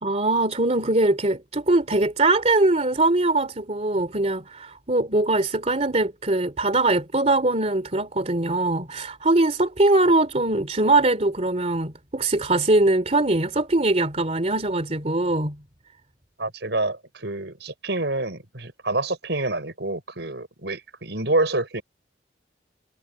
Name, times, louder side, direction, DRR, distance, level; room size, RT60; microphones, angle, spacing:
voice 1, 0.0-15.6, right 2 dB, 35° right, 2.8 m, -22 dB
voice 2, 16.4-21.8, right 2 dB, 70° right, 5.5 m, -27 dB
head